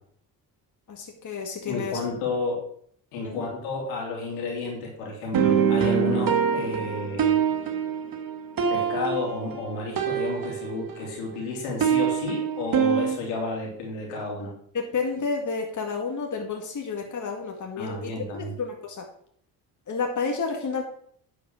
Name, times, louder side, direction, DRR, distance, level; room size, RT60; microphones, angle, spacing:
voice 1, 0.9-2.0 3.2-3.5 14.7-19.1 19.9-20.8, left 4 dB, 35° left, 2 dB, 2.0 m, -30 dB
voice 2, 1.7-2.6 3.1-7.4 8.7-14.5 17.8-18.5, left 3 dB, 75° left, -1 dB, 3.0 m, -32 dB
sound 1, 5.3-11.1 11.4-13.2, right 7 dB, 40° right, 1.6 m, -25 dB
10.5 x 5.0 x 6.1 m, 0.63 s
hypercardioid pair, 45°, 50 cm